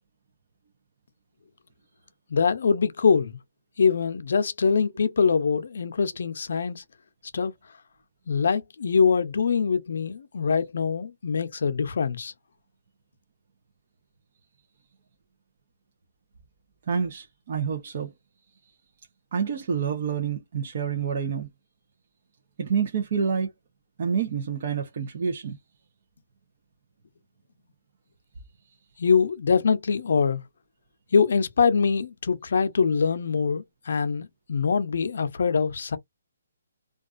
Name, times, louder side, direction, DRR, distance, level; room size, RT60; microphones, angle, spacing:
voice 1, 2.3-3.4 3.8-6.8 7.3-7.5 8.3-12.3 29.0-30.4 31.1-36.0, left 5 dB, 65° left, 0.6 m, -23 dB
voice 2, 16.9-18.1 19.3-21.5 22.6-23.5 24.0-25.6, right 6 dB, 45° right, 0.6 m, -28 dB
2.4 x 2.3 x 2.4 m
hypercardioid pair, 165°, 0 cm